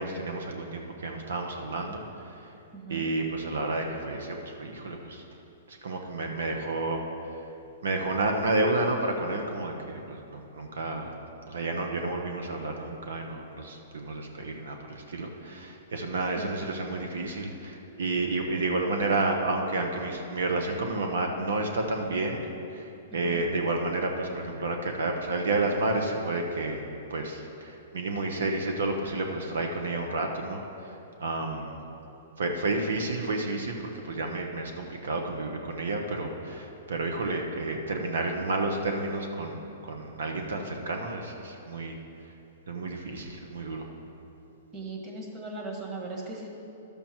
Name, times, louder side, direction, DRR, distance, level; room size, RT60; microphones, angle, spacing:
voice 1, 0.0-2.0 2.9-5.2 5.8-7.0 7.8-11.1 11.5-22.4 22.7-22.8 23.1-26.8 27.1-30.6 31.2-31.8 32.4-33.7 34.0-42.0 42.7-43.8, right 2 dB, 85° right, 3 dB, 1.0 m, -30 dB
voice 2, 2.7-3.1 16.4-16.6 19.0-19.2 23.1-23.4 32.7-32.9 44.7-46.5, right 3 dB, 25° right, -1 dB, 1.7 m, -38 dB
12.0 x 6.9 x 4.4 m, 2.8 s
hypercardioid pair, 140°, 0 cm